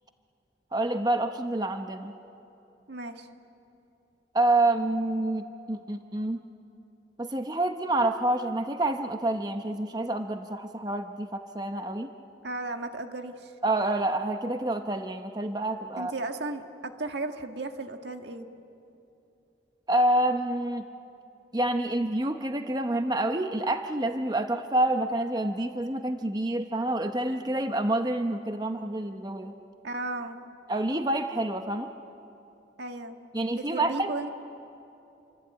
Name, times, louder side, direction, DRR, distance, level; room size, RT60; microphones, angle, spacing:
voice 1, 0.7-2.1 4.3-6.4 7.2-12.1 13.6-16.1 19.9-20.8 21.5-29.5 30.7-31.9 33.3-34.1, right 1 dB, 20° right, 6 dB, 0.8 m, -28 dB
voice 2, 2.9-3.3 12.4-13.5 15.9-18.5 29.8-30.4 32.8-33.2 33.5-34.3, right 2 dB, 75° right, 5 dB, 1.6 m, -35 dB
28.0 x 23.5 x 9.0 m, 2.8 s
head